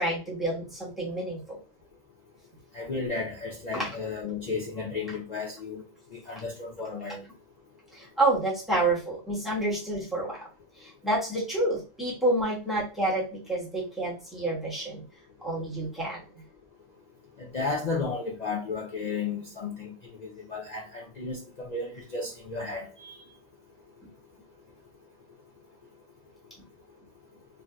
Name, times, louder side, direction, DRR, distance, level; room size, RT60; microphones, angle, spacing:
voice 1, 0.0-1.6 3.7-3.9 7.9-10.4 10.8-15.0 15.4-16.2, right 2 dB, ahead, 1.0 m, -29 dB
voice 2, 2.7-5.8 6.3-7.2 17.5-19.9 20.5-23.1, left 4 dB, 80° left, 0.3 m, -33 dB
3.5 x 2.5 x 2.2 m
omnidirectional pair, 1.4 m